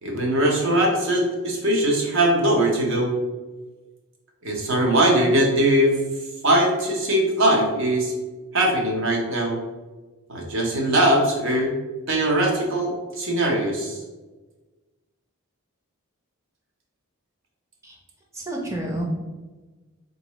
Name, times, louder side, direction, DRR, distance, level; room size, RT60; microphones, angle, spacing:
voice 1, 0.0-3.1 4.4-6.0 6.4-8.1 8.5-9.6 10.3-11.7 12.1-14.0, right 1 dB, 60° right, 0 dB, 0.8 m, -21 dB
voice 2, 18.3-19.0, right 1 dB, 15° right, -2 dB, 0.6 m, -29 dB
3.8 x 2.5 x 3.0 m, 1.2 s
head